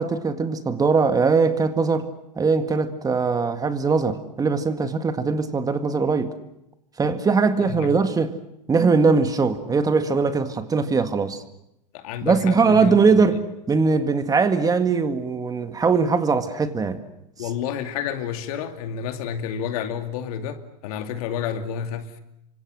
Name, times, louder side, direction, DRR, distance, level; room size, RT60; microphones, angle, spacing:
voice 1, 0.0-2.1 2.4-6.3 7.0-8.3 8.7-11.4 12.2-13.4 13.7-17.0, right 4 dB, 15° right, 2.0 m, -21 dB
voice 2, 7.6-7.9 11.9-13.2 17.4-22.2, left 8 dB, 65° left, 2.5 m, -30 dB
28.5 x 25.0 x 6.4 m
hypercardioid pair, 105°, 21 cm